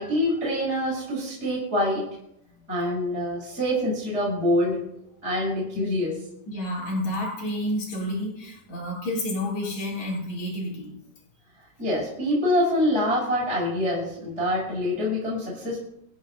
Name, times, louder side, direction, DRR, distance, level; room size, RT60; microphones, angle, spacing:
voice 1, 0.0-2.1 2.7-4.8 5.2-6.1 11.8-15.8, left 1 dB, 10° right, -5 dB, 7.1 m, -25 dB
voice 2, 6.5-10.9, left 1 dB, 35° left, -2 dB, 4.4 m, -30 dB
28.0 x 10.0 x 4.1 m, 0.75 s
omnidirectional pair, 5.9 m